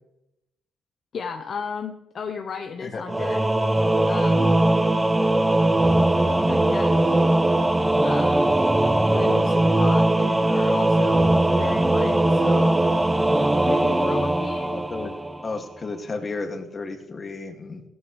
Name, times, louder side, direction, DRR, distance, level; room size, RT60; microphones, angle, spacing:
voice 1, 1.1-3.4 4.1-4.6 6.5-7.2 8.0-8.6 9.1-12.8 13.6-14.7, left 6 dB, 55° left, 5 dB, 1.1 m, -34 dB
Singing / Musical instrument, 3.1-15.5, right 1 dB, 10° right, 0.8 m, -20 dB
voice 2, 14.6-15.1 15.4-17.8, left 3 dB, 35° left, 4 dB, 2.4 m, -33 dB
17.0 x 14.5 x 3.4 m, 0.90 s
cardioid pair, 90°, 0 cm